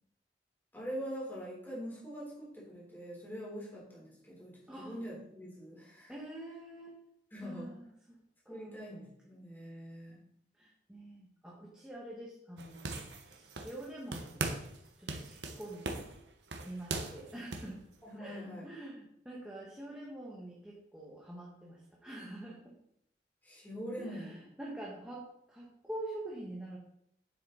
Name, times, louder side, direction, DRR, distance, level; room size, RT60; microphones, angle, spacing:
voice 1, 0.7-6.1 7.3-7.7 8.5-10.2 18.0-18.7 23.4-24.4, equal, 10° left, -6 dB, 3.8 m, -43 dB
voice 2, 4.7-5.0 6.1-7.0 7.4-7.8 8.1-8.2 8.4-8.8 10.6-13.0 13.3-14.5 15.0-16.0 16.6-17.8 18.2-22.7 24.0-26.8, right 1 dB, 5° right, -4 dB, 1.5 m, -46 dB
sound 1, 12.6-13.9 14.1-14.8 15.1-17.7, right 3 dB, 90° right, 1.2 m, -39 dB
9.2 x 7.6 x 4.1 m, 0.73 s
head